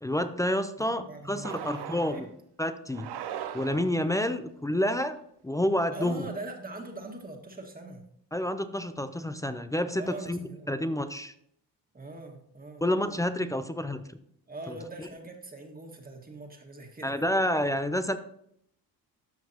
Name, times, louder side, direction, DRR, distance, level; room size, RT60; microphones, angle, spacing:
voice 1, 0.0-2.3 2.6-3.1 3.5-5.2 5.4-6.3 8.3-10.4 10.7-11.3 12.8-14.0 14.7-15.1 17.0-18.2, left 1 dB, 10° left, 10 dB, 0.5 m, -29 dB
voice 2, 0.8-2.2 5.9-8.0 10.0-10.7 11.9-12.8 14.5-17.3, right 2 dB, 20° right, 2 dB, 1.8 m, -42 dB
sound 1, 1.4-2.3 2.9-4.1, right 9 dB, 75° right, 0.9 m, -39 dB
13.5 x 5.6 x 2.9 m, 0.70 s
cardioid pair, 95°, 40 cm